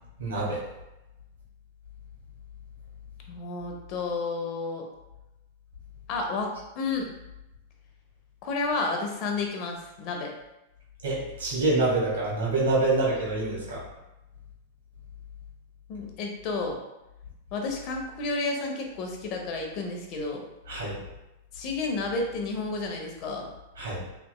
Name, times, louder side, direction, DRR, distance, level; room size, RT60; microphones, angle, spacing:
voice 1, 0.2-0.6 11.0-13.8 20.7-21.0 23.8-24.0, right 2 dB, 85° right, -5 dB, 1.4 m, -26 dB
voice 2, 3.3-4.9 6.1-7.1 8.4-10.3 15.9-16.8 17.5-20.4 21.5-23.5, left 3 dB, 45° left, 1 dB, 0.7 m, -31 dB
3.4 x 2.9 x 2.3 m, 0.94 s
hypercardioid pair, 110°, 0 cm